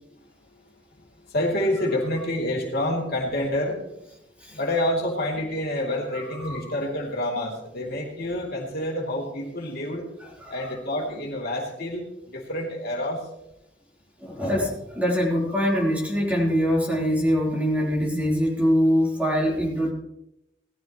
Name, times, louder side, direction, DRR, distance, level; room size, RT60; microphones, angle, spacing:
voice 1, 0.1-4.0 4.5-10.1 10.5-13.3, left 1 dB, 55° left, -2 dB, 3.0 m, -28 dB
voice 2, 14.2-19.9, equal, 10° right, -4 dB, 3.8 m, -23 dB
18.5 x 13.0 x 3.1 m, 0.84 s
head